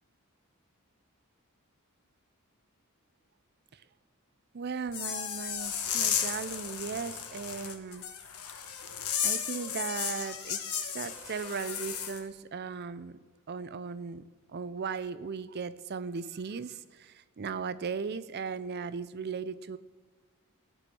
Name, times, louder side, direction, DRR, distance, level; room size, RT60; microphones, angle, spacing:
voice 1, 4.5-8.1 9.2-19.8, right 5 dB, 45° right, 15 dB, 0.5 m, -37 dB
sound 1, 4.9-12.2, left 8 dB, 80° left, 1.2 m, -34 dB
18.0 x 6.1 x 8.4 m, 1.4 s
head